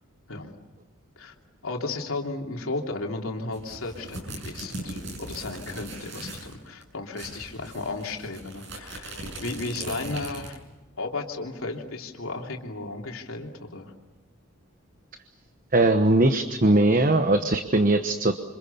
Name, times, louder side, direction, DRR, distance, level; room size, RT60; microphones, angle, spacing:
voice 1, 1.6-10.6 11.0-13.9, left 3 dB, 75° left, 1 dB, 3.1 m, -34 dB
sound 1, 3.5-6.5 6.8-6.9 7.1-10.7, right 2 dB, 55° right, 6.9 m, -39 dB
voice 2, 15.7-18.3, right 2 dB, 40° right, 7 dB, 1.1 m, -20 dB
28.5 x 26.0 x 7.0 m, 1.1 s
head